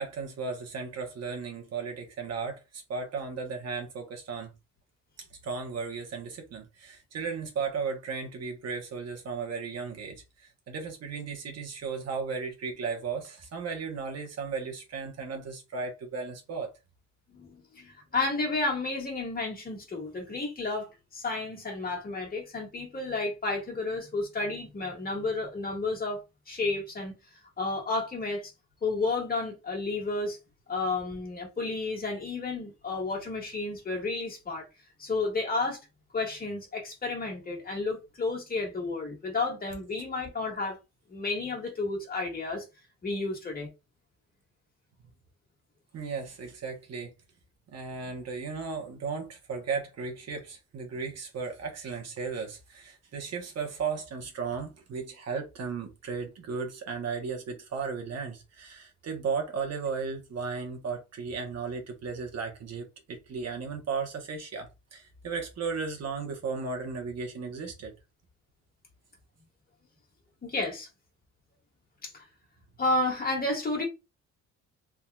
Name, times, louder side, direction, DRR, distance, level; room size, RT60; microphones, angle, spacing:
voice 1, 0.0-4.5 5.2-16.7 45.9-47.1 47.7-67.9, right 5 dB, 55° right, 1.2 m, -35 dB
voice 2, 17.3-27.2 27.6-28.5 28.8-30.4 30.7-34.7 35.0-35.8 36.1-40.8 41.1-42.7 43.0-43.7 70.4-70.9 72.0-72.3 72.8-73.8, left 3 dB, 30° left, 1.7 m, -31 dB
3.6 x 2.8 x 2.3 m
cardioid pair, 90°, 30 cm